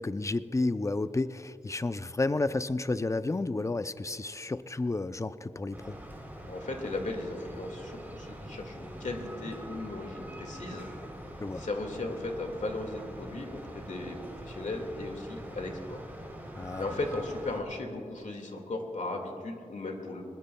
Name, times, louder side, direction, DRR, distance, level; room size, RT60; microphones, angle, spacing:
voice 1, 0.0-6.0 11.4-11.6 16.6-16.8, left 2 dB, 25° left, 13 dB, 0.4 m, -31 dB
sound 1, 5.7-17.6, equal, 15° right, 3.2 m, -44 dB
voice 2, 6.5-10.9 11.5-16.0 16.8-20.2, left 2 dB, 70° left, 3 dB, 1.9 m, -36 dB
21.5 x 20.0 x 2.2 m, 2.6 s
wide cardioid pair, 75°, 13 cm